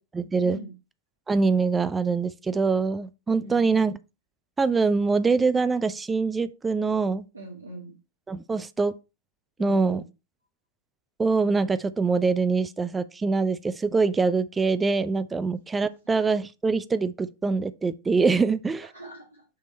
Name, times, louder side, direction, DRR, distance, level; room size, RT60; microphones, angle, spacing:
voice 1, 0.1-0.6 1.3-4.0 4.6-7.2 8.3-8.9 9.6-10.0 11.2-18.9, right 4 dB, 15° right, 0.5 m, -24 dB
voice 2, 3.4-3.9 7.3-7.9 9.6-10.0 18.9-19.6, right 1 dB, 80° right, 1.3 m, -41 dB
6.5 x 3.5 x 4.2 m
figure-of-eight pair, 90°, 0 cm